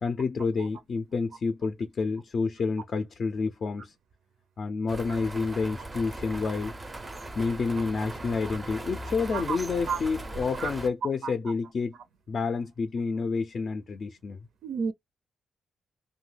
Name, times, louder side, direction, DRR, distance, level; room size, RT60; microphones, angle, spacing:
voice 1, 0.0-3.9 4.6-6.7 7.4-11.9 12.3-14.4, left 4 dB, 45° left, 0.4 m, -29 dB
sound 1, 4.9-10.9, right 1 dB, 20° right, 0.4 m, -39 dB
voice 2, 9.3-10.0 10.6-10.7 11.0-11.5 14.6-14.9, right 5 dB, 80° right, 0.5 m, -32 dB
2.9 x 2.2 x 3.2 m
wide cardioid pair, 150°, 0 cm